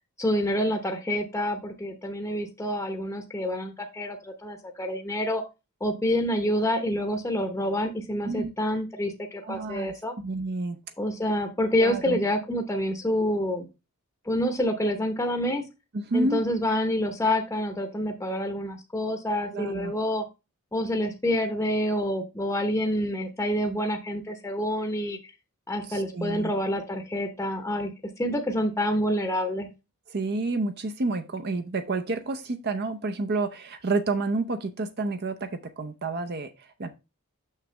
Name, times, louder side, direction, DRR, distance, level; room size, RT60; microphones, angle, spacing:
voice 1, 0.2-5.4 5.8-10.2 11.0-13.7 14.3-15.6 16.1-20.2 20.7-25.2 25.7-27.9 28.2-29.7, equal, 10° left, 5 dB, 0.8 m, -27 dB
voice 2, 9.4-10.8 11.8-12.2 15.9-16.4 19.5-19.9 25.8-26.5 30.1-36.9, right 3 dB, 50° right, 7 dB, 0.7 m, -29 dB
6.5 x 6.1 x 3.2 m, 0.26 s
head